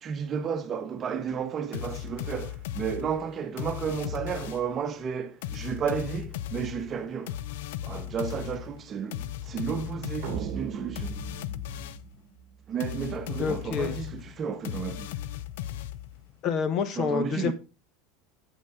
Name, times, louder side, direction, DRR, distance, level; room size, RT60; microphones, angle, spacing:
voice 1, 0.0-7.4 7.8-11.2 12.7-15.1 17.0-17.5, right 7 dB, 25° right, 1.0 m, -32 dB
sound 1, 1.7-4.8 5.4-12.2 12.8-16.3, left 12 dB, 80° left, 0.6 m, -37 dB
sound 2, 10.2-12.7, right 8 dB, 50° right, 1.1 m, -37 dB
voice 2, 13.4-14.0 16.4-17.5, left 6 dB, 35° left, 1.3 m, -27 dB
8.3 x 8.2 x 3.8 m
supercardioid pair, 160°, 0 cm